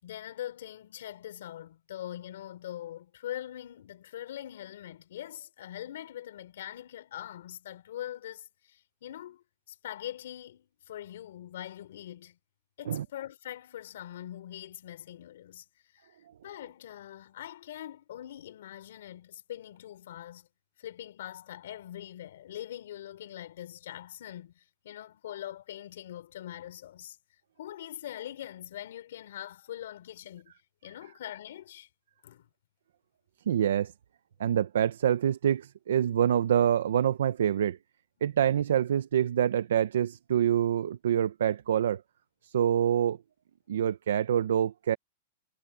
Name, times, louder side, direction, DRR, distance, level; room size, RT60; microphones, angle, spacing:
voice 1, 0.0-12.4 12.8-15.6 15.9-16.2 16.4-20.5 20.8-27.2 27.6-30.5 30.8-31.9 32.2-32.5, left 12 dB, 70° left, 4.1 m, -43 dB
voice 2, 33.5-33.9 34.4-37.8 38.2-42.0 42.4-43.2 43.7-45.0, right 9 dB, 80° right, 0.8 m, -26 dB
supercardioid pair, 165°, 0 cm